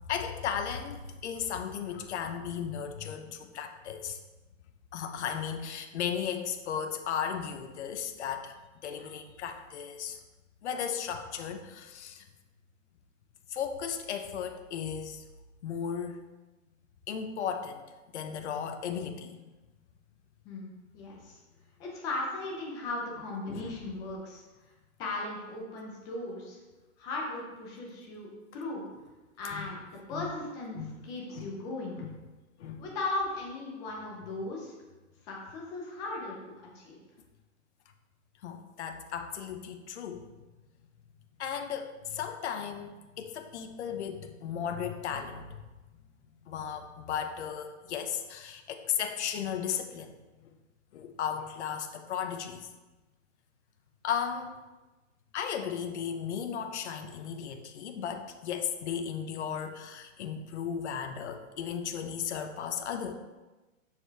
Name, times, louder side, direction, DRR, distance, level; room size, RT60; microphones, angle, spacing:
voice 1, 0.1-4.2 4.9-10.2 10.6-12.2 13.5-15.2 15.6-16.2 17.1-17.8 18.1-19.5 23.5-23.7 29.5-29.6 30.1-30.3 30.7-30.9 31.3-31.5 32.0-32.1 32.6-32.8 38.4-40.2 41.4-45.6 46.4-50.2 50.9-52.7 54.0-54.6 55.3-63.1, left 8 dB, 60° left, 6 dB, 0.9 m, -35 dB
voice 2, 20.4-21.4 21.8-24.4 25.0-26.6 27.0-28.8 29.4-30.8 31.0-32.0 32.8-34.7 35.2-36.4 36.7-37.0, left 2 dB, 10° left, -2 dB, 0.5 m, -37 dB
7.0 x 6.7 x 3.4 m, 1.2 s
hypercardioid pair, 165°, 39 cm